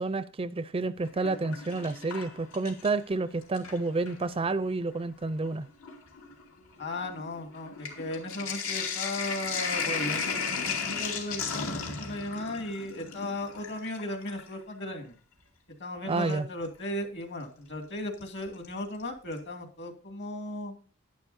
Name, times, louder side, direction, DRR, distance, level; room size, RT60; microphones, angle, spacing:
voice 1, 0.0-5.7 16.1-16.5, right 3 dB, 25° right, 0.4 m, -30 dB
Sink (filling or washing), 1.0-3.1 3.4-4.2 5.0-5.1 5.4-14.5 16.3-16.4 18.2-18.7 19.0-19.1 19.3-19.4, left 5 dB, 85° left, 2.5 m, -35 dB
voice 2, 6.8-15.1 15.8-20.7, left 1 dB, 55° left, 2.5 m, -36 dB
11.0 x 10.5 x 2.7 m
head